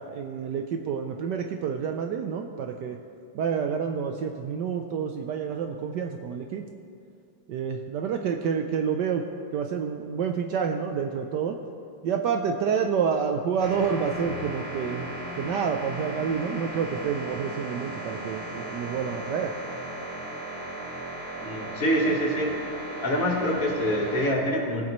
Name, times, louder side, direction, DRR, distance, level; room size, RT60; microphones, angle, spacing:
voice 1, 0.0-3.0 3.3-6.7 7.5-9.2 9.5-11.6 12.0-15.1 15.4-19.5, right 6 dB, 70° right, 4 dB, 1.1 m, -28 dB
sound 1, 13.6-24.3, right 1 dB, 50° right, 2.3 m, -36 dB
voice 2, 21.4-22.5 23.0-24.8, equal, 45° left, -1 dB, 1.6 m, -25 dB
18.5 x 8.6 x 3.0 m, 2.4 s
omnidirectional pair, 2.2 m